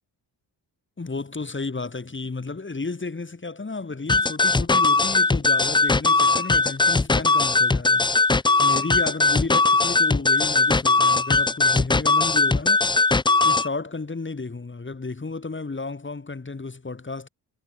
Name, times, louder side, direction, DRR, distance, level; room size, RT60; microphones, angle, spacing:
voice 1, 1.0-13.0 13.4-17.3, left 3 dB, 25° left, 4.1 m, -33 dB
sound 1, 4.1-13.7, left 3 dB, 10° left, 0.5 m, -19 dB
cardioid pair, 70°, 43 cm